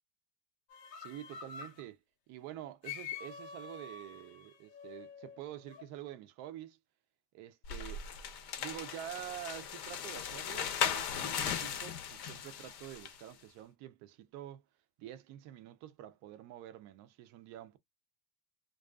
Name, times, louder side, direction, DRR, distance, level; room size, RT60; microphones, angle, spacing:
sound 1, 0.7-1.8 2.8-5.9, left 7 dB, 90° left, 0.9 m, -47 dB
voice 1, 1.0-2.0 2.3-6.8 7.3-8.0 8.6-14.6 15.0-17.8, right 12 dB, 35° right, 0.4 m, -47 dB
sound 2, 7.6-13.2, left 8 dB, 65° left, 0.9 m, -37 dB
2.4 x 2.3 x 2.3 m
supercardioid pair, 120°, 49 cm